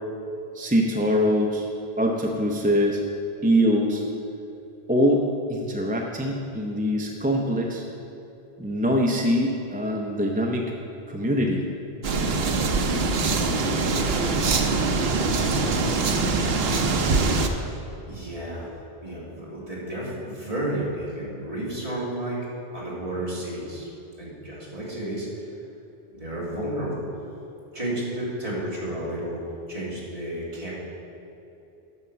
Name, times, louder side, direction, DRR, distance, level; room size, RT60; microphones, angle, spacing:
voice 1, 0.5-1.7 2.0-3.0 3.4-4.0 4.9-7.8 8.6-10.7 11.1-11.6, equal, 10° right, 0 dB, 0.5 m, -23 dB
sound 1, 12.0-17.5, right 3 dB, 75° right, 1.0 m, -23 dB
voice 2, 18.0-18.7 19.0-22.4 22.7-23.9 24.2-25.5 26.1-27.1 27.7-30.7, right 1 dB, 35° right, -7 dB, 2.6 m, -32 dB
9.4 x 5.6 x 6.8 m, 3.0 s
omnidirectional pair, 1.0 m